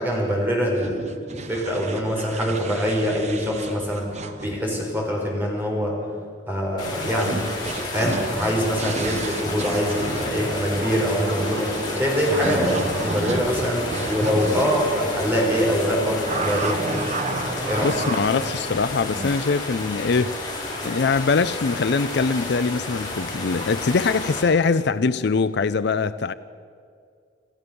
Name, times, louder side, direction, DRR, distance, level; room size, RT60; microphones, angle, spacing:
voice 1, 0.0-4.1 4.4-5.9 6.5-7.4 7.8-16.8 17.7-17.9, equal, 10° right, 4.7 m, -24 dB
sound 1, 0.8-4.7 7.0-14.8 16.3-19.4, right 2 dB, 35° right, 1.1 m, -32 dB
sound 2, 6.8-24.4, left 2 dB, 20° left, 6.0 m, -31 dB
sound 3, 9.8-18.5, right 1 dB, 60° right, 2.6 m, -35 dB
voice 2, 17.8-20.5 20.8-26.3, left 4 dB, 60° left, 0.5 m, -22 dB
27.0 x 14.5 x 7.0 m
head